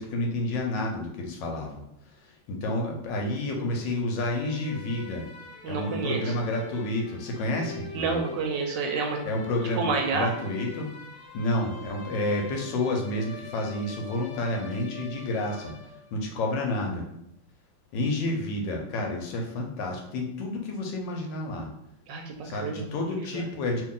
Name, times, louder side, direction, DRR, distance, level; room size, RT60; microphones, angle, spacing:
voice 1, 0.0-1.8 2.2-5.2 5.7-8.2 9.2-10.9 11.3-17.0 17.9-21.7 22.4-23.8, left 1 dB, 75° left, 2 dB, 1.2 m, -30 dB
sound 1, 4.2-16.3, left 3 dB, 55° left, 0.8 m, -44 dB
voice 2, 5.6-6.3 7.9-9.2 9.8-10.3 22.1-23.0 23.3-23.4, right 4 dB, 75° right, 2 dB, 1.1 m, -29 dB
2.8 x 2.8 x 3.7 m, 0.79 s
omnidirectional pair, 2.1 m